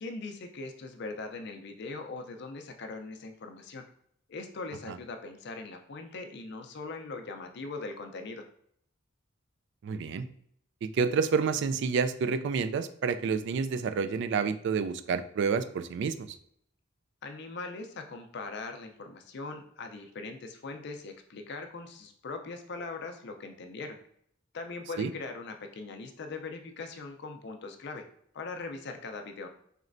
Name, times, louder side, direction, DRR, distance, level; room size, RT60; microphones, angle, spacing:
voice 1, 0.0-3.8 4.3-8.4 17.2-24.0 24.5-28.0 28.3-29.5, left 3 dB, 60° left, 5 dB, 0.5 m, -40 dB
voice 2, 9.8-10.3 10.8-16.3 25.0-25.1, right 5 dB, 65° right, 11 dB, 0.3 m, -29 dB
4.2 x 3.1 x 2.5 m, 0.69 s
head